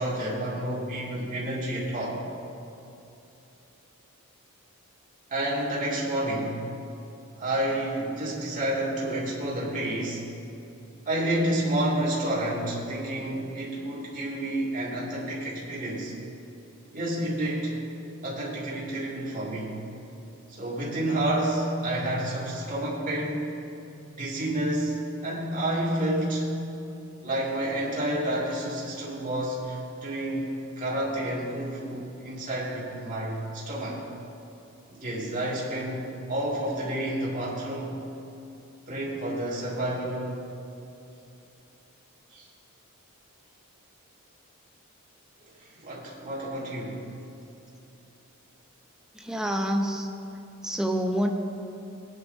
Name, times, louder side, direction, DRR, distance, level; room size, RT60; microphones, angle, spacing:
voice 1, 0.0-2.2 5.3-6.6 7.4-10.2 11.0-16.1 16.9-17.8 18.2-19.8 20.5-23.5 24.2-26.5 27.2-34.0 35.0-38.0 38.9-40.3 42.3-42.5 45.6-47.0, right 1 dB, 40° right, -7 dB, 2.4 m, -29 dB
voice 2, 49.1-50.1 50.6-51.3, equal, 5° right, 2 dB, 0.7 m, -27 dB
19.0 x 9.3 x 2.7 m, 2.8 s
head